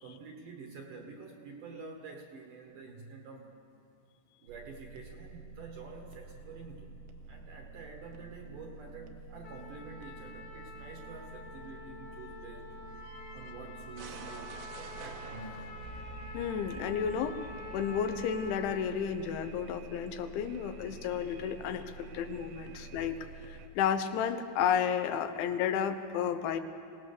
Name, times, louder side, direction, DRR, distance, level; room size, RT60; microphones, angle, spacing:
voice 1, 0.0-3.5 4.4-7.0 7.3-12.7 13.3-15.7, right 3 dB, 65° right, 2 dB, 2.3 m, -48 dB
sound 1, 4.5-23.7, right 4 dB, 80° right, 3.2 m, -48 dB
Trumpet, 9.4-18.9, left 4 dB, 50° left, 1.9 m, -48 dB
voice 2, 16.3-17.4 17.7-21.8 22.1-23.2 23.5-26.6, left 8 dB, 85° left, 8 dB, 3.4 m, -32 dB
23.5 x 18.5 x 6.7 m, 2.4 s
omnidirectional pair, 5.2 m